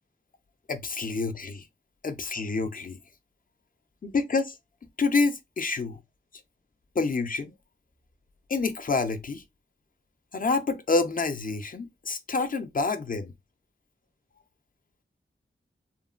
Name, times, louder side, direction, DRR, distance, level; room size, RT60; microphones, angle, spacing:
voice 1, 0.7-1.7 2.0-3.0 4.0-4.6 5.0-6.0 7.0-7.5 8.5-9.4 10.3-13.3, left 4 dB, 40° left, 0.4 m, -27 dB
3.0 x 2.1 x 2.3 m
wide cardioid pair, 65°, 21 cm